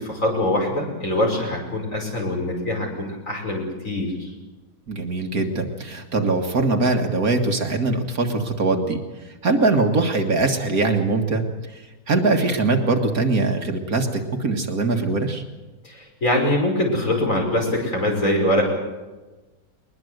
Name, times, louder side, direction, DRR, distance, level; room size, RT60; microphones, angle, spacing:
voice 1, 0.0-4.3 15.8-18.6, left 1 dB, 45° left, 0 dB, 5.8 m, -23 dB
voice 2, 4.9-15.4, right 3 dB, 55° right, 4 dB, 2.1 m, -22 dB
21.5 x 20.5 x 7.9 m, 1.2 s
omnidirectional pair, 1.9 m